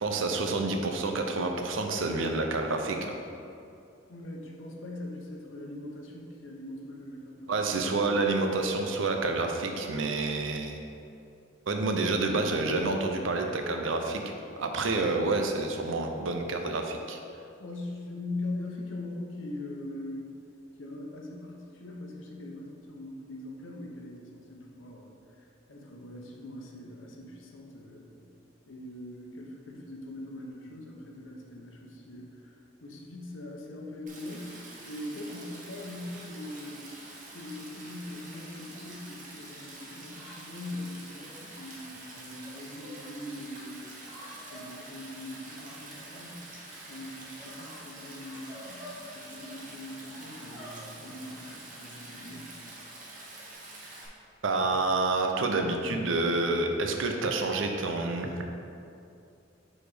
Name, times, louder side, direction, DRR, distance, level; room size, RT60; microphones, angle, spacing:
voice 1, 0.0-3.2 7.5-10.8 11.7-14.2 14.6-17.2 54.4-58.4, right 3 dB, 80° right, 4 dB, 0.6 m, -28 dB
voice 2, 4.1-7.7 17.6-20.3 20.8-28.3 28.7-36.9 37.3-43.9 44.5-46.5 46.9-52.5, left 1 dB, 80° left, 0 dB, 0.9 m, -41 dB
Stream, 34.1-54.1, right 2 dB, 40° right, 0.9 m, -47 dB
sound 1, 37.4-37.7 38.5-39.0 40.1-41.4 42.4-43.0 44.0-44.6 45.5-46.1 46.4-48.9 49.3-49.6 50.1-53.5, equal, 10° right, 1.4 m, -51 dB
4.8 x 4.2 x 5.0 m, 2.6 s
head